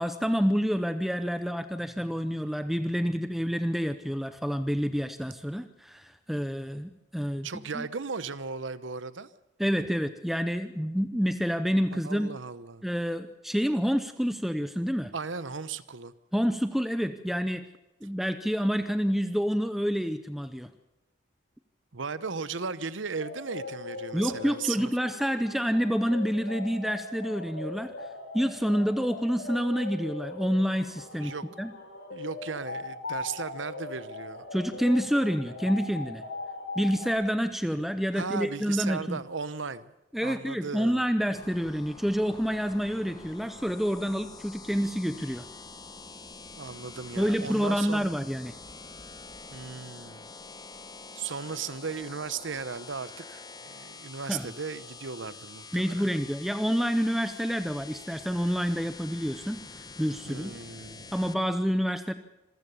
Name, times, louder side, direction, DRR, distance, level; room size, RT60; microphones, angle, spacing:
voice 1, 0.0-7.5 7.7-7.8 9.6-12.3 12.8-15.1 16.3-17.6 18.0-20.7 24.1-27.9 28.3-31.7 34.5-36.2 36.8-39.2 40.1-45.4 47.2-48.5 54.3-54.5 55.7-59.6 60.0-60.5 61.1-62.1, equal, ahead, 10 dB, 0.7 m, -28 dB
voice 2, 7.4-9.3 11.9-12.8 15.1-16.1 21.9-24.9 31.2-31.4 32.1-34.4 38.1-39.9 40.2-41.0 46.5-48.1 49.5-50.3 51.2-56.1 60.3-61.1, right 5 dB, 80° right, 15 dB, 0.9 m, -36 dB
sound 1, 23.1-37.1, left 3 dB, 70° left, 5.9 m, -40 dB
sound 2, 41.3-61.3, left 3 dB, 20° left, 1.2 m, -46 dB
26.5 x 15.0 x 7.0 m, 1.0 s
head